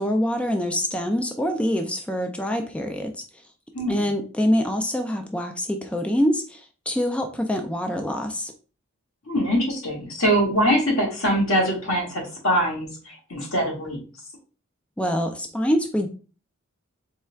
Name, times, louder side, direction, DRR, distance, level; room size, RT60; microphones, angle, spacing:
voice 1, 0.0-3.1 3.9-8.5 15.0-16.1, equal, 5° left, 4 dB, 0.3 m, -25 dB
voice 2, 3.7-4.1 9.3-14.0, equal, 80° left, -2 dB, 1.7 m, -23 dB
4.3 x 3.2 x 2.3 m, 0.35 s
head